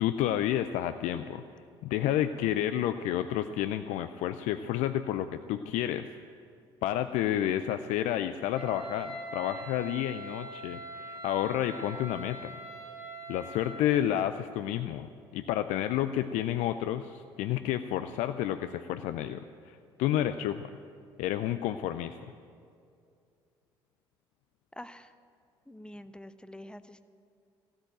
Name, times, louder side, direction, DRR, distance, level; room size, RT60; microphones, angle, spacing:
voice 1, 0.0-1.4 1.8-6.1 6.8-12.5 13.3-20.7 21.2-22.2, left 11 dB, 60° left, 10 dB, 0.5 m, -30 dB
Wind instrument woodwind instrument, 8.5-13.9, right 2 dB, 80° right, 2.7 m, -43 dB
voice 2, 24.8-25.1 25.7-27.0, left 1 dB, 5° left, 12 dB, 0.7 m, -46 dB
15.5 x 8.7 x 9.0 m, 2.4 s
figure-of-eight pair, 50°, 14 cm